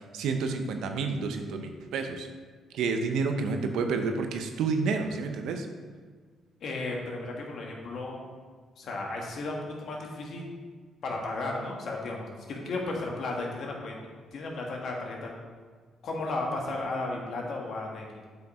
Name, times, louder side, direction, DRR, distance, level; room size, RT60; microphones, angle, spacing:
voice 1, 0.1-2.3 2.7-5.7, right 4 dB, 85° right, 5 dB, 0.8 m, -29 dB
voice 2, 6.6-8.3 8.8-10.5 11.0-14.0 14.3-15.4 16.0-18.0, left 2 dB, 65° left, -1 dB, 1.7 m, -34 dB
7.9 x 5.3 x 4.3 m, 1.6 s
cardioid pair, 90°, 0 cm